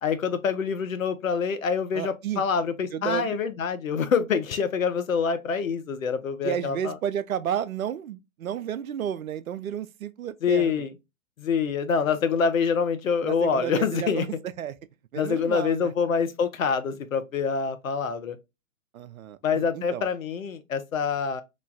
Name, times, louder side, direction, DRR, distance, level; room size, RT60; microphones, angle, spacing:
voice 1, 0.0-6.9 10.4-10.9 11.4-14.2 15.2-18.4 19.4-21.4, left 6 dB, 75° left, 0.8 m, -26 dB
voice 2, 1.9-2.4 2.9-3.4 6.4-10.9 13.2-14.8 15.1-15.9 18.9-20.1, right 9 dB, 80° right, 0.5 m, -32 dB
3.1 x 2.2 x 3.8 m
figure-of-eight pair, 115°, 41 cm